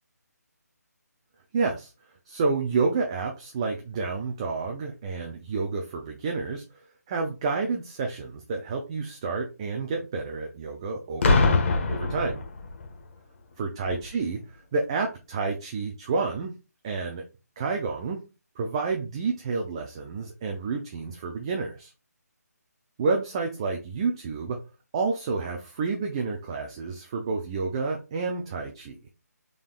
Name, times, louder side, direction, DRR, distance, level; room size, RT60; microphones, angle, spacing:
voice 1, 1.5-1.9 2.3-11.5 11.9-12.4 13.6-16.5 16.8-17.2 17.6-18.2 18.6-21.9 23.0-24.6 24.9-29.0, right 4 dB, 20° right, 3 dB, 0.3 m, -29 dB
Boom, 11.2-13.0 13.9-14.1, left 3 dB, 45° left, 1.0 m, -23 dB
3.7 x 3.5 x 2.4 m, 0.30 s
figure-of-eight pair, 160°, 9 cm